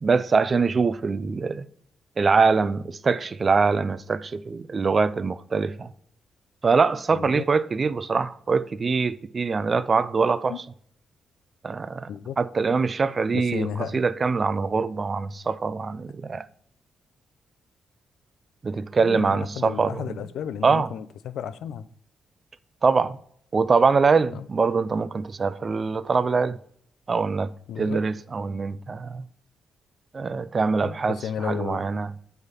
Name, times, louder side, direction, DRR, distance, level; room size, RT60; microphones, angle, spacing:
voice 1, 0.0-1.7 2.2-5.9 6.6-10.6 11.6-12.1 12.4-13.7 13.9-16.5 18.6-20.0 20.6-20.9 22.8-23.2 23.5-26.6 27.1-27.5 27.8-29.2 30.1-32.1, right 4 dB, 35° right, 0.4 m, -23 dB
voice 2, 7.1-7.4 10.5-10.6 12.1-12.4 13.3-14.0 19.0-21.8 24.3-24.5 27.7-28.0 30.8-31.8, left 9 dB, 80° left, 0.5 m, -33 dB
8.0 x 3.5 x 5.7 m
cardioid pair, 95°, 0 cm